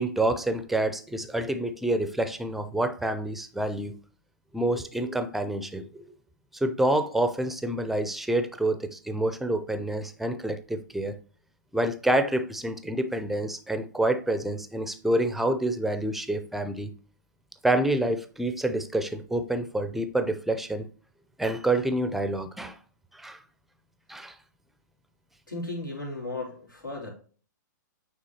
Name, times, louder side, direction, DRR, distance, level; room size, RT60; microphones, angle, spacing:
voice 1, 0.0-3.9 4.5-6.0 6.6-11.1 11.7-16.9 17.6-20.9 21.4-22.8 23.1-23.4 24.1-24.3, right 1 dB, ahead, 0.5 m, -27 dB
voice 2, 25.5-27.1, left 2 dB, 85° left, 3.0 m, -35 dB
8.6 x 3.8 x 2.9 m
figure-of-eight pair, 115°, 10 cm